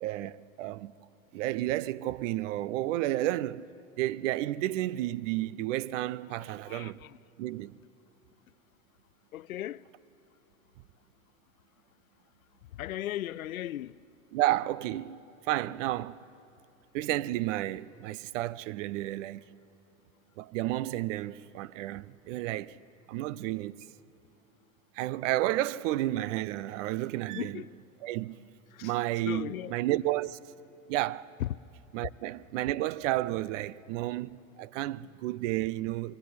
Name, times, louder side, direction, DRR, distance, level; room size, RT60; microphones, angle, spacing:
voice 1, 0.0-0.9 1.3-3.7 4.0-7.0 7.4-7.7 14.3-15.2 15.5-16.2 16.9-19.4 20.4-22.8 23.1-23.8 24.9-27.6 28.0-28.4 28.8-30.4 30.9-31.3 31.9-36.2, right 15 dB, 65° right, 0.7 m, -31 dB
voice 2, 6.3-7.2 9.3-9.8 12.7-14.0 27.4-27.7 28.7-28.9 29.3-29.7 31.4-31.6, left 13 dB, 90° left, 0.6 m, -37 dB
25.5 x 22.5 x 10.0 m
hypercardioid pair, 85°, 40 cm